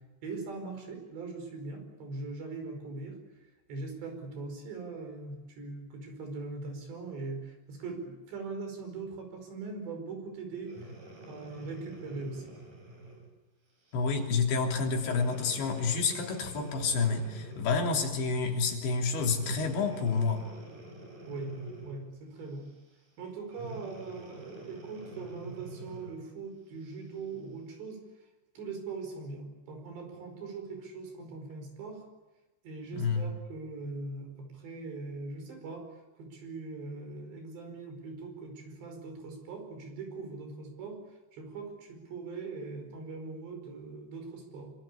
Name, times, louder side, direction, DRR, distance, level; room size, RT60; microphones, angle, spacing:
voice 1, 0.2-3.2 3.7-10.9 11.3-12.6 21.3-21.6 21.8-22.7 23.2-28.1 28.6-32.0 32.6-35.9 36.2-41.1 41.3-44.7, right 3 dB, 75° right, 5 dB, 7.2 m, -41 dB
Breathing, 10.6-13.3 13.9-14.1 14.9-17.8 19.3-22.1 23.5-26.2 26.9-27.0, right 1 dB, 45° right, 7.6 m, -46 dB
voice 2, 13.9-20.5 32.9-33.3, left 4 dB, 85° left, 2 dB, 5.5 m, -29 dB
26.0 x 24.5 x 8.6 m, 1.0 s
omnidirectional pair, 5.0 m